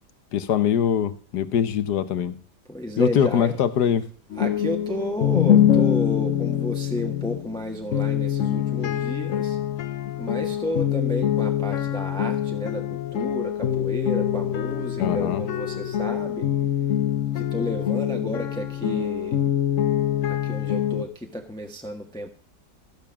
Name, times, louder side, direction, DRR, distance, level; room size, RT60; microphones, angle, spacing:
voice 1, 0.3-2.4 3.0-4.0 15.0-15.4, left 9 dB, 75° left, 13 dB, 1.5 m, -23 dB
voice 2, 2.7-3.6 4.4-9.6 10.2-16.5 17.3-19.4 20.3-22.3, equal, 5° left, 3 dB, 1.2 m, -32 dB
sound 1, 4.3-21.0, left 10 dB, 60° left, 1.0 m, -24 dB
15.0 x 7.0 x 7.2 m, 0.42 s
omnidirectional pair, 1.7 m